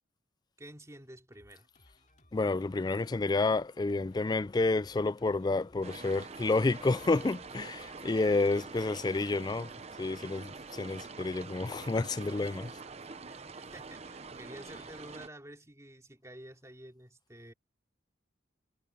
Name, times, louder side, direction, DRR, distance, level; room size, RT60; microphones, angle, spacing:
voice 1, 0.6-1.7 12.4-12.6 13.2-17.5, right 1 dB, 15° right, 2.9 m, -50 dB
Drum kit, 1.3-9.1, left 1 dB, 40° left, 4.0 m, -65 dB
voice 2, 2.3-9.7 10.0-12.7, left 3 dB, 20° left, 0.4 m, -30 dB
sound 1, 5.8-15.3, right 4 dB, 35° right, 0.8 m, -46 dB
head